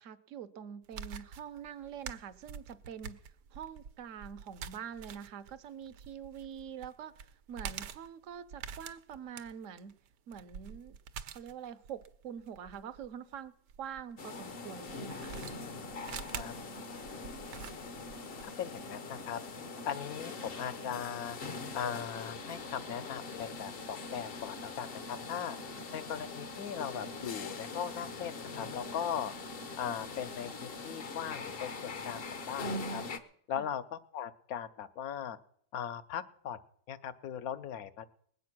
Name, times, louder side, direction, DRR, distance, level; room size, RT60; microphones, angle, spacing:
voice 1, 0.0-3.2 3.5-9.9 10.3-11.0 11.3-15.3 25.7-25.8 33.6-33.7, right 8 dB, 60° right, 12 dB, 1.0 m, -45 dB
sound 1, 0.8-14.0 14.9-18.5, right 7 dB, 85° right, 1.4 m, -46 dB
sound 2, 14.2-33.2, left 3 dB, 45° left, 0.9 m, -42 dB
voice 2, 18.4-19.4 19.9-21.4 21.7-25.6 25.9-29.3 29.8-32.2 32.5-33.0 33.5-35.4 35.7-36.6 36.9-38.0, left 8 dB, 65° left, 13 dB, 1.1 m, -39 dB
20.0 x 8.4 x 6.0 m, 0.64 s
omnidirectional pair, 1.8 m